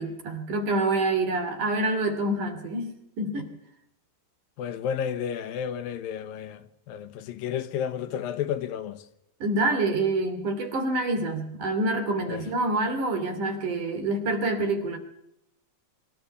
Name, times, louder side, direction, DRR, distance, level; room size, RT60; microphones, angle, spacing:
voice 1, 0.0-3.5 9.4-15.0, right 2 dB, 60° right, 4.2 m, -27 dB
voice 2, 4.6-9.0 12.3-12.4, left 8 dB, 80° left, 2.9 m, -32 dB
24.5 x 14.5 x 8.3 m
omnidirectional pair, 4.2 m